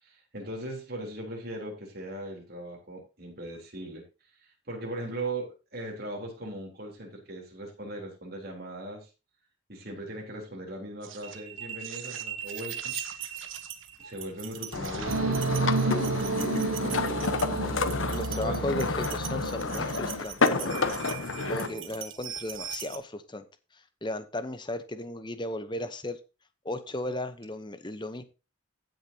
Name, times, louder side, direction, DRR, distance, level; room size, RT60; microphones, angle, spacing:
voice 1, 0.0-4.0 4.4-9.1 9.7-13.3 14.0-18.8 21.4-22.0, right 1 dB, 45° right, 0 dB, 3.8 m, -39 dB
sound 1, 11.0-23.0, right 9 dB, 70° right, 1.3 m, -40 dB
sound 2, 14.7-21.7, left 3 dB, 70° left, 1.0 m, -30 dB
sound 3, 15.0-20.2, right 3 dB, 85° right, 0.8 m, -31 dB
voice 2, 18.1-20.8 21.5-23.4 24.0-26.2 26.6-28.2, left 1 dB, 20° left, 11 dB, 0.9 m, -35 dB
16.0 x 6.6 x 2.9 m, 0.29 s
head